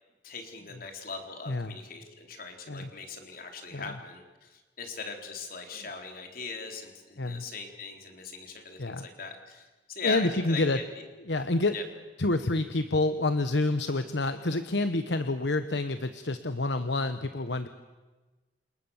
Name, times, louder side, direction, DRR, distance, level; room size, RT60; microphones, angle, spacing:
voice 1, 0.2-11.1 11.7-11.8, left 4 dB, 55° left, 4 dB, 3.9 m, -40 dB
voice 2, 1.5-1.8 2.7-2.9 3.7-4.0 7.2-7.4 8.8-9.1 10.0-10.8 11.3-11.8 12.2-17.7, left 2 dB, 70° left, 10 dB, 1.1 m, -28 dB
28.5 x 28.0 x 7.3 m, 1.2 s
head